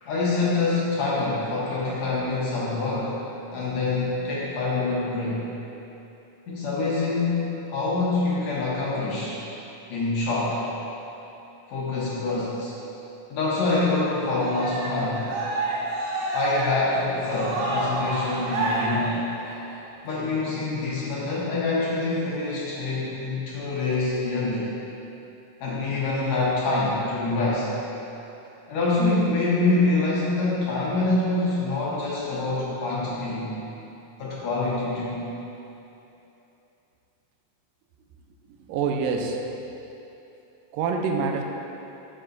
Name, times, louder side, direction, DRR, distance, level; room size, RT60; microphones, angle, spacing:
voice 1, 0.0-3.2 3.5-5.5 6.5-9.4 9.9-10.6 11.7-12.7 13.3-15.3 16.3-19.2 20.0-24.7 25.6-27.7 28.7-33.5 34.2-35.3, left 3 dB, 65° left, -7 dB, 2.0 m, -25 dB
Cheering, 14.3-19.8, right 2 dB, 70° right, 2.6 m, -28 dB
voice 2, 38.7-39.4 40.7-41.4, right 5 dB, 85° right, 3 dB, 2.3 m, -25 dB
11.0 x 6.8 x 2.6 m, 3.0 s
omnidirectional pair, 3.9 m